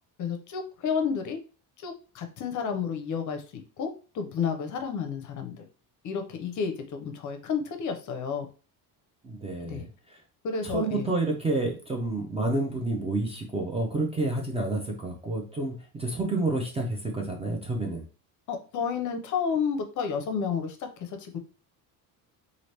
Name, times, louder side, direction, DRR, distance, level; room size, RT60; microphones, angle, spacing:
voice 1, 0.2-1.4 1.8-3.4 3.8-5.6 6.0-8.5 9.6-9.9 10.4-11.1 18.5-21.4, left 6 dB, 45° left, 6 dB, 0.6 m, -31 dB
voice 2, 9.2-10.2 10.6-18.1, right 2 dB, 15° right, 1 dB, 0.5 m, -29 dB
2.8 x 2.5 x 3.2 m, 0.35 s
cardioid pair, 145°, 40 cm